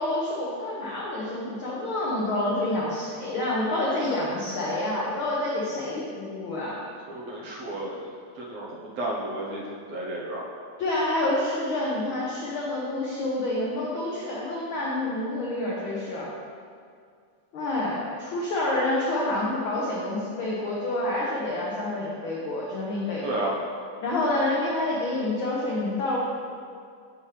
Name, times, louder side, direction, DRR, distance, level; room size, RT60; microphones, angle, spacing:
voice 1, 0.0-6.8 10.8-16.3 17.5-23.4 24.0-26.2, left 1 dB, 90° left, -5 dB, 1.1 m, -28 dB
voice 2, 7.1-8.0 8.4-8.7 9.0-10.4 23.2-23.5, right 1 dB, 65° right, -5 dB, 1.9 m, -32 dB
7.1 x 6.6 x 3.3 m, 2.2 s
omnidirectional pair, 3.5 m